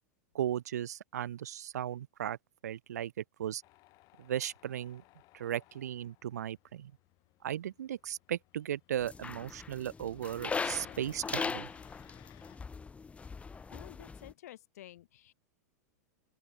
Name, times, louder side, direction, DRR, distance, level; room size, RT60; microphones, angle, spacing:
voice 1, 0.3-2.4 2.6-3.6 4.2-5.0 5.3-6.9 7.4-11.7, right 11 dB, 85° right, 2.1 m, -36 dB
Tools, 3.6-12.6, left 21 dB, 45° left, 7.9 m, -59 dB
sound 1, 9.0-14.3, left 5 dB, 15° left, 3.4 m, -39 dB
voice 2, 13.7-15.3, left 13 dB, 75° left, 4.9 m, -51 dB
open air
hypercardioid pair, 125°, 9 cm